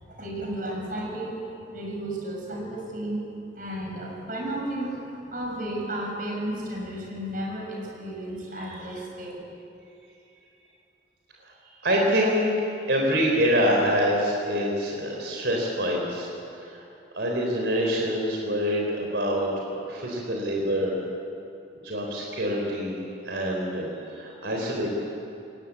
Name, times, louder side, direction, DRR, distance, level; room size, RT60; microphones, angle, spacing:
voice 1, 0.1-1.4 1.7-3.2 3.5-9.4, right 1 dB, 50° right, -1 dB, 6.2 m, -33 dB
voice 2, 11.8-16.9 17.1-21.0 21.8-24.9, equal, 75° right, -1 dB, 3.6 m, -26 dB
21.5 x 19.0 x 8.6 m, 2.7 s
head